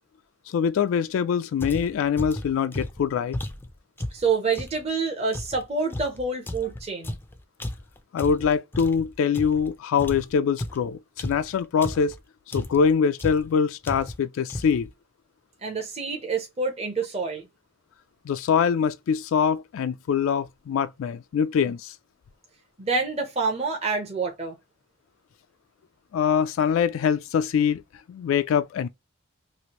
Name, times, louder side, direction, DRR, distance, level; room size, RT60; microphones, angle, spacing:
voice 1, 0.5-3.4 8.1-12.2 12.5-14.9 18.3-21.9 26.1-27.8 28.1-28.9, left 7 dB, 90° left, 0.3 m, -24 dB
sound 1, 1.6-4.8 5.3-9.7 10.0-12.2 12.5-12.9 13.2-13.5 13.8-14.2 14.5-14.9, left 1 dB, 10° left, 0.3 m, -35 dB
voice 2, 4.1-7.2 15.6-17.4 22.8-24.5, right 4 dB, 30° right, 0.7 m, -27 dB
3.1 x 2.5 x 2.8 m
head